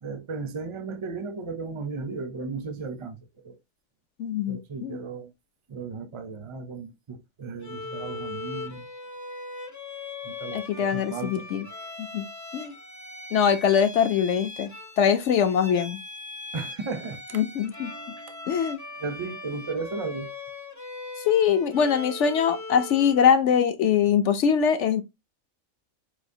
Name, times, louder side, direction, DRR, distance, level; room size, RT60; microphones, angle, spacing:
voice 1, 0.0-3.6 4.5-5.3 5.7-8.9 10.2-11.4 16.5-17.4 19.0-20.3, right 4 dB, 35° right, 0.5 m, -35 dB
voice 2, 4.2-5.0 10.5-11.7 12.0-12.3 12.5-12.7 13.3-14.7 15.0-16.0 17.3-17.9 18.5-18.8 21.3-25.0, left 7 dB, 65° left, 0.9 m, -23 dB
Bowed string instrument, 7.6-23.4, left 3 dB, 15° left, 0.6 m, -40 dB
5.6 x 3.0 x 2.7 m
omnidirectional pair, 1.5 m